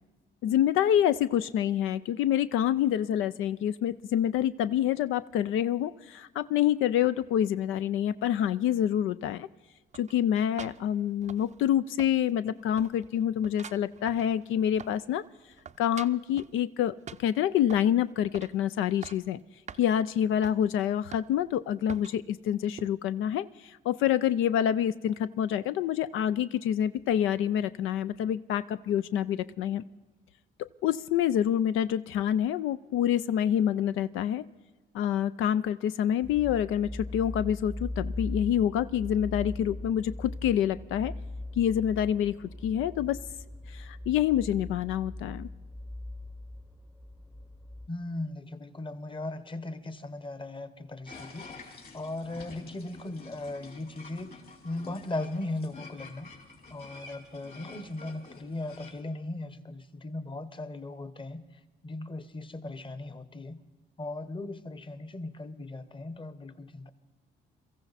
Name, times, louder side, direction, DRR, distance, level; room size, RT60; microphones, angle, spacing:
voice 1, 0.4-9.5 9.9-15.3 15.8-19.4 19.8-29.8 30.6-34.4 34.9-41.1 41.6-43.2 43.7-45.5, left 10 dB, 85° left, 14 dB, 0.4 m, -27 dB
sound 1, 9.9-11.7 12.0-12.5 12.8-15.1 15.4-16.6 17.1-17.9 18.3-18.6 18.9-19.3 19.7-19.8 20.4-20.6 21.1-21.5 21.9-22.2 22.8-22.9, right 7 dB, 35° right, 0.5 m, -46 dB
sound 2, 36.2-47.9, left 1 dB, 5° left, 0.8 m, -40 dB
voice 2, 47.9-56.3 56.7-61.4 61.8-63.6 64.0-66.9, left 2 dB, 25° left, 13 dB, 1.1 m, -38 dB
sound 3, 51.0-59.0, left 3 dB, 50° left, 3.9 m, -49 dB
23.0 x 14.5 x 4.1 m, 1.3 s
cardioid pair, 90°, 20 cm